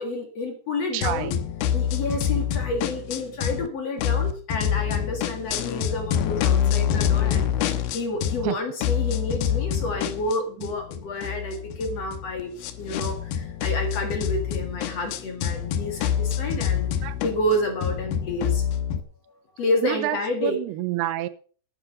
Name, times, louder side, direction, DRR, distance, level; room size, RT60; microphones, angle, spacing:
voice 1, 0.0-1.4 1.7-7.5 7.9-16.9 17.2-18.6 19.6-20.6, left 1 dB, 45° left, 2.6 m, -29 dB
voice 2, 0.9-1.4 8.4-8.6 10.6-10.7 17.0-17.2 19.8-21.3, right 15 dB, 85° right, 2.8 m, -28 dB
sound 1, 1.0-3.7 4.0-8.5 8.8-19.0, left 9 dB, 80° left, 2.8 m, -26 dB
12.0 x 9.6 x 5.4 m
omnidirectional pair, 4.6 m